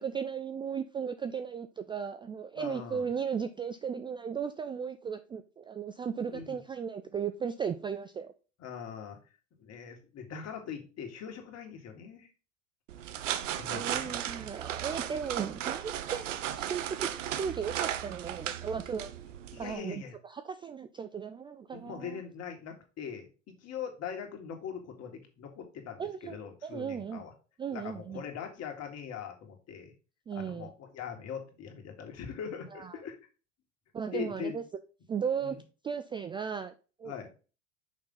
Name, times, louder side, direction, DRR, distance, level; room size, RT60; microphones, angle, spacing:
voice 1, 0.0-8.3 13.7-17.1 17.4-19.1 19.6-22.2 26.0-26.4 26.6-27.2 27.6-28.2 30.3-30.7 32.7-32.9 33.9-34.6 35.1-35.6 35.8-36.7 37.0-37.3, right 7 dB, 15° right, 10 dB, 0.3 m, -36 dB
voice 2, 2.6-3.0 6.2-6.6 8.6-9.2 9.6-12.3 13.6-14.2 19.5-20.2 21.7-27.3 27.7-29.9 30.3-33.2 34.1-34.6 35.4-35.6 37.0-37.3, left 7 dB, 40° left, 3 dB, 2.2 m, -41 dB
sound 1, 12.9-19.8, right 11 dB, 75° right, 0.7 m, -36 dB
6.3 x 5.5 x 3.8 m, 0.34 s
hypercardioid pair, 80°, 38 cm